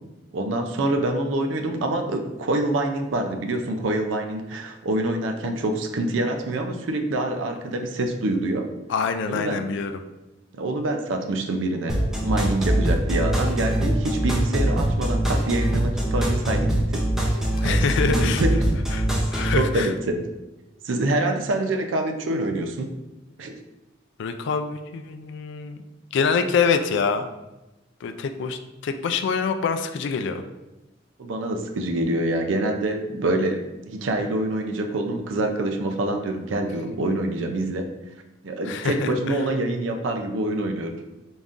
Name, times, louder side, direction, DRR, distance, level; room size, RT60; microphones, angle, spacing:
voice 1, 0.3-8.7 9.3-9.6 10.5-17.0 17.6-18.5 19.6-20.2 20.8-22.9 23.4-23.6 31.2-37.9 38.4-41.0, right 2 dB, 75° right, 5 dB, 0.4 m, -26 dB
voice 2, 8.9-10.0 17.6-18.4 18.9-19.9 24.2-25.8 26.1-27.3 28.0-30.4 38.7-39.4, left 5 dB, 65° left, 8 dB, 0.3 m, -25 dB
sound 1, 11.9-19.6, right 1 dB, 5° right, 0.6 m, -23 dB
3.9 x 3.6 x 2.5 m, 1.0 s
head